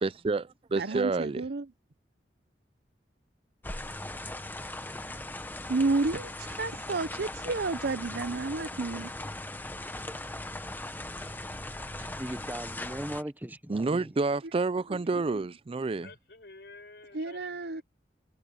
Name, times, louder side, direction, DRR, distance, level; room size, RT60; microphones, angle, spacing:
voice 1, 0.0-1.4 11.2-11.3 13.7-16.1, right 3 dB, 30° right, 0.4 m, -29 dB
voice 2, 0.7-1.7 5.7-9.1 14.9-15.0 17.1-17.8, right 3 dB, 60° right, 0.7 m, -31 dB
sound 1, 3.6-13.2, left 1 dB, 10° left, 1.2 m, -39 dB
voice 3, 12.0-14.2 15.1-15.2, right 1 dB, 10° right, 0.8 m, -39 dB
voice 4, 16.0-17.8, left 3 dB, 65° left, 5.2 m, -50 dB
head